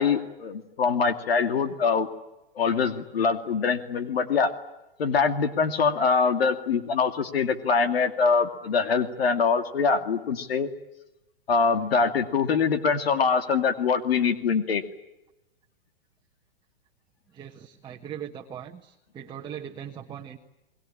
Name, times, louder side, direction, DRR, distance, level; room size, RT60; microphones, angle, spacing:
voice 1, 0.0-2.1 2.6-4.5 5.0-10.7 11.5-14.8, left 5 dB, 80° left, 8 dB, 2.5 m, -24 dB
voice 2, 17.3-20.4, right 9 dB, 15° right, 2 dB, 1.3 m, -40 dB
30.0 x 21.0 x 8.7 m, 0.96 s
hypercardioid pair, 140°, 30 cm